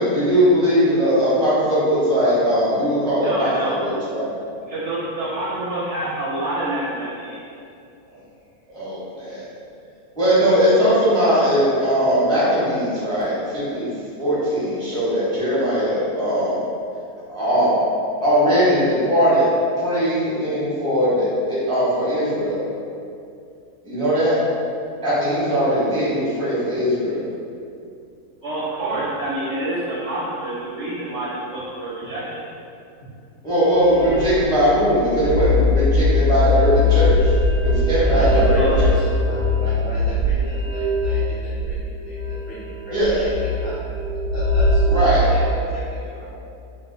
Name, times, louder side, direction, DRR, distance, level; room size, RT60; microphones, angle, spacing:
voice 1, 0.0-4.3 8.7-9.5 10.2-13.9 14.2-16.6 17.3-17.7 18.2-19.5 19.8-22.6 23.8-24.4 25.0-27.2 33.4-37.3 37.6-38.9 42.9-43.2 44.9-45.2, equal, 5° left, -10 dB, 0.4 m, -19 dB
voice 2, 3.2-3.8 4.7-7.5 28.4-32.4 38.5-38.8, right 1 dB, 65° right, -8 dB, 0.7 m, -27 dB
sound 1, 33.5-45.5, left 1 dB, 75° left, 1.0 m, -21 dB
voice 3, 38.0-44.0 44.2-46.6, equal, 55° left, -12 dB, 0.6 m, -33 dB
2.6 x 2.0 x 3.7 m, 2.5 s
omnidirectional pair, 1.6 m